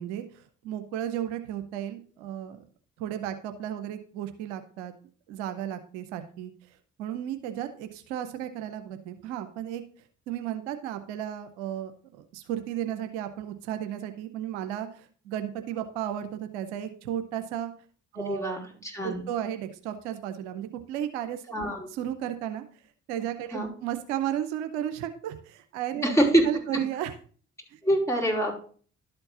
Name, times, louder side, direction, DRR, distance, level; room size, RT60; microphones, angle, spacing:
voice 1, 0.0-2.6 3.0-4.9 5.3-6.5 7.0-9.8 10.3-17.7 18.1-18.6 19.0-22.6 23.1-26.1 26.4-27.1 27.7-27.8, right 11 dB, 85° right, 9 dB, 0.7 m, -34 dB
voice 2, 18.3-19.2 21.5-21.9 23.5-23.7 26.0-26.4 27.8-28.5, right 1 dB, 10° left, -1 dB, 4.5 m, -25 dB
11.5 x 4.5 x 5.5 m, 0.43 s
hypercardioid pair, 40°, 34 cm